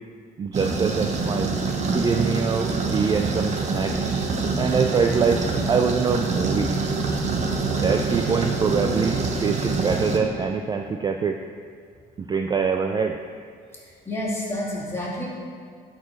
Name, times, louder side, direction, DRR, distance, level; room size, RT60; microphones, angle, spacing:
voice 1, 0.4-1.5 1.9-4.0 4.6-5.4 5.7-6.7 7.7-11.4 12.2-13.2, right 5 dB, 25° right, 5 dB, 0.4 m, -24 dB
sound 1, 0.5-10.2, right 4 dB, 45° right, 1.0 m, -25 dB
voice 2, 4.2-4.7 7.4-7.6 13.7-15.3, left 1 dB, 15° left, -5 dB, 2.3 m, -31 dB
11.5 x 4.5 x 4.5 m, 2.1 s
cardioid pair, 110°, 17 cm